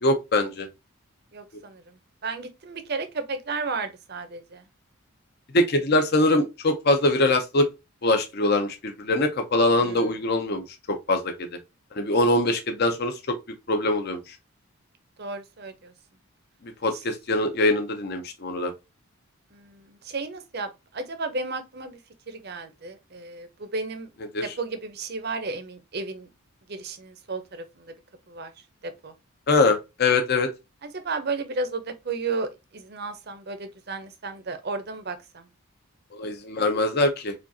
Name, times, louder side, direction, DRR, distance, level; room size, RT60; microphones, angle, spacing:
voice 1, 0.0-0.7 5.5-7.7 8.0-11.5 11.9-13.4 13.7-14.2 16.8-18.7 24.3-24.4 29.5-30.5 36.1-37.3, left 2 dB, 45° left, 0.6 m, -23 dB
voice 2, 1.3-4.6 9.8-10.1 15.2-15.9 16.9-17.0 19.5-22.0 22.3-24.1 24.4-26.3 26.7-27.9 28.3-28.5 28.8-29.1 30.8-35.5, right 3 dB, 45° right, 0.6 m, -33 dB
4.9 x 2.4 x 2.7 m
head